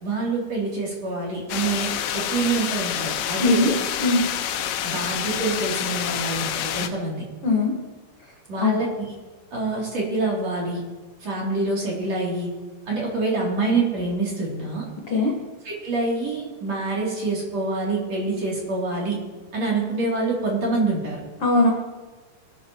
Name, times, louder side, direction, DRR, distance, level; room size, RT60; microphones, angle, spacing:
voice 1, 0.0-3.7 4.8-7.2 8.5-9.1 9.5-10.8 11.2-12.5 12.9-14.8 15.6-19.2 19.5-21.2, right 3 dB, 40° right, -4 dB, 3.9 m, -26 dB
sound 1, 1.5-6.9, left 10 dB, 85° left, 3.1 m, -27 dB
voice 2, 3.4-3.7 4.0-4.2 7.4-7.7 8.6-8.8 15.1-15.3 21.4-21.7, left 2 dB, 65° left, -1 dB, 1.4 m, -19 dB
22.5 x 12.5 x 3.1 m, 1.3 s
omnidirectional pair, 5.2 m